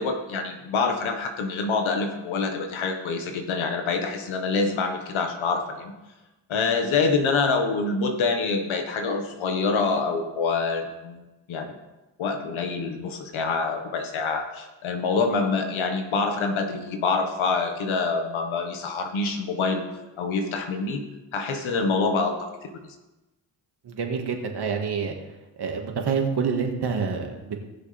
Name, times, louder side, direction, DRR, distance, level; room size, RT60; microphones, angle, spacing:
voice 1, 0.0-5.9 6.5-11.8 12.2-19.8 20.2-21.0 21.3-22.8, left 4 dB, 85° left, 4 dB, 1.7 m, -26 dB
voice 2, 23.8-25.2 25.6-27.6, right 6 dB, 55° right, 3 dB, 2.0 m, -27 dB
19.0 x 6.5 x 3.5 m, 1.1 s
cardioid pair, 75°, 46 cm